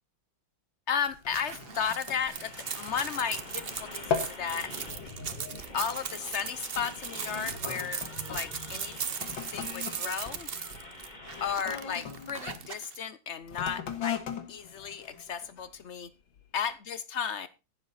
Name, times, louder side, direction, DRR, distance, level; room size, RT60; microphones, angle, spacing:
voice 1, 0.9-4.7 5.7-8.0 8.3-9.0 9.5-10.5 11.4-14.2 14.5-16.1 16.5-17.5, left 7 dB, 70° left, 15 dB, 0.6 m, -34 dB
sound 1, 1.1-3.7 3.9-4.5 4.9-5.2 5.9-6.1 6.8-12.6 13.4-15.8 16.4-16.5, left 7 dB, 90° left, 2.2 m, -39 dB
sound 2, 1.3-13.0, right 7 dB, 45° right, 0.8 m, -38 dB
sound 3, 2.3-11.5, left 1 dB, 25° left, 2.4 m, -45 dB
15.5 x 7.5 x 4.1 m, 0.29 s
omnidirectional pair, 2.1 m